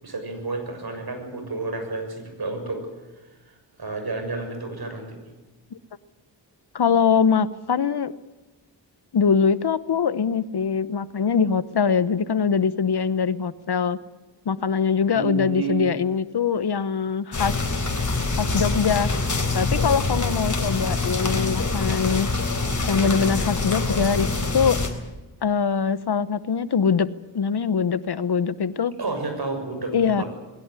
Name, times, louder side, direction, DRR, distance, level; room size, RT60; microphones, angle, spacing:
voice 1, 0.0-2.9 3.8-5.2 15.1-15.8 29.0-30.2, right 3 dB, 60° right, 5 dB, 6.8 m, -30 dB
voice 2, 6.7-8.1 9.1-14.0 14.4-17.5 18.4-19.1 19.5-22.3 22.9-24.3 24.5-24.8 25.4-27.1 27.3-28.9 29.9-30.2, left 6 dB, 65° left, 16 dB, 1.0 m, -22 dB
sound 1, 17.3-24.9, left 3 dB, 45° left, 4.2 m, -25 dB
21.0 x 17.0 x 9.7 m, 1.2 s
cardioid pair, 60°, 43 cm